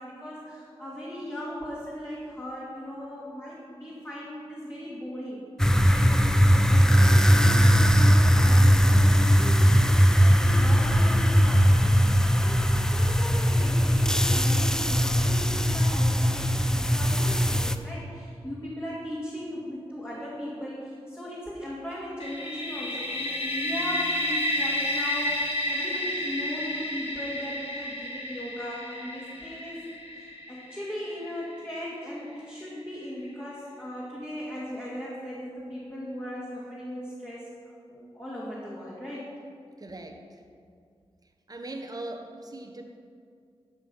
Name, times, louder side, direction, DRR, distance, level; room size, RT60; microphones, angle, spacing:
voice 1, 0.0-5.4 5.8-29.8 30.2-37.5 37.9-39.2, equal, 20° left, -8 dB, 2.4 m, -38 dB
sound 1, 5.6-17.8, equal, 5° left, 0.5 m, -20 dB
sound 2, 22.2-31.9, left 1 dB, 65° left, 1.4 m, -31 dB
voice 2, 39.8-40.2 41.5-42.8, right 2 dB, 35° right, 4 dB, 1.2 m, -39 dB
12.5 x 5.2 x 5.5 m, 2.3 s
cardioid pair, 60°, 10 cm